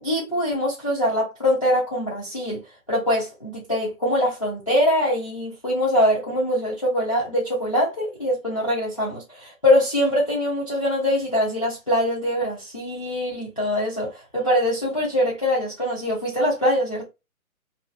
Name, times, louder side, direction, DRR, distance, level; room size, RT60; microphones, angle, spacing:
voice 1, 0.0-2.6 2.9-17.1, left 1 dB, 25° left, 0.4 m, -23 dB
2.4 x 2.3 x 2.3 m
hypercardioid pair, 155°, 43 cm